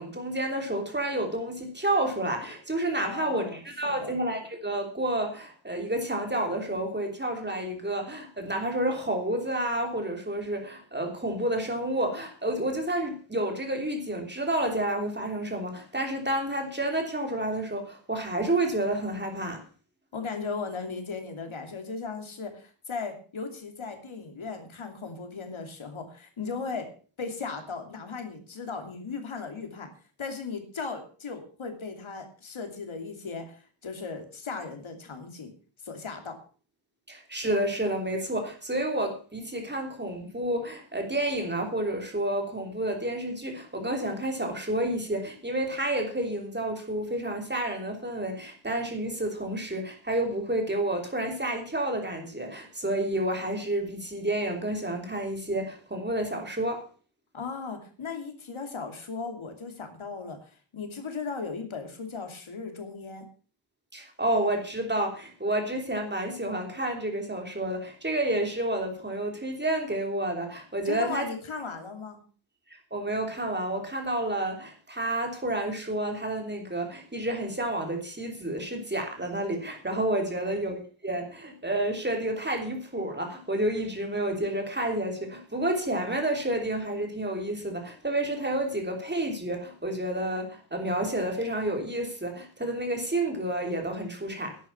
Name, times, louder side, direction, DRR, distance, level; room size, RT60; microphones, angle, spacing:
voice 1, 0.0-19.6 37.1-56.8 63.9-71.3 72.9-94.6, right 1 dB, 20° right, 3.2 m, -30 dB
voice 2, 3.0-3.6 3.9-4.1 20.1-26.9 27.2-29.9 30.2-35.5 35.8-36.4 57.3-63.2 70.8-72.2 80.3-80.5, left 4 dB, 90° left, 2.9 m, -37 dB
11.0 x 9.0 x 7.0 m
wide cardioid pair, 110°, 47 cm